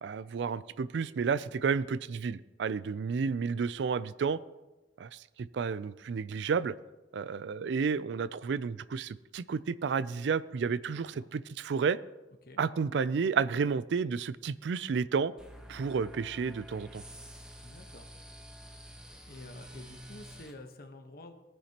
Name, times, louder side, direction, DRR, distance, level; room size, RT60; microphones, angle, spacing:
voice 1, 0.0-4.4 5.0-6.7 7.1-12.0 12.6-15.3 15.7-17.0, right 5 dB, 75° right, 17 dB, 0.4 m, -31 dB
voice 2, 10.8-11.3 12.4-12.6 17.6-18.1 19.3-21.3, left 2 dB, 55° left, 6 dB, 1.1 m, -49 dB
sound 1, 15.4-20.5, equal, 5° right, 1.1 m, -48 dB
18.5 x 10.0 x 2.9 m, 1.1 s
head